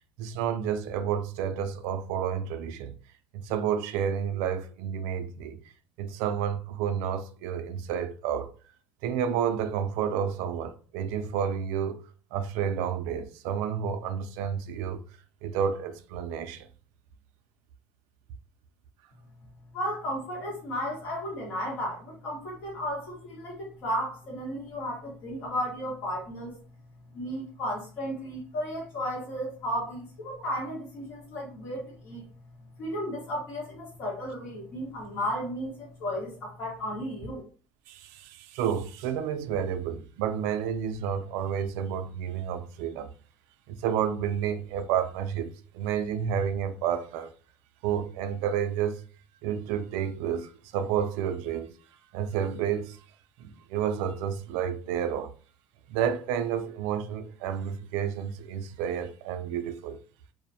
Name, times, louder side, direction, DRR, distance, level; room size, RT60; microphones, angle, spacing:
voice 1, 0.0-2.9 3.3-5.6 6.0-8.5 9.0-12.0 12.3-15.0 15.4-16.7 37.9-43.1 43.7-45.5 45.7-47.3 47.8-49.0 49.4-51.7 52.1-53.0 53.4-55.3 55.9-60.0, right 8 dB, 80° right, 0.3 m, -30 dB
voice 2, 19.7-26.6 27.1-32.2 32.8-37.4, equal, 50° left, 1.2 m, -34 dB
2.4 x 2.1 x 2.7 m
cardioid pair, 165°, 5 cm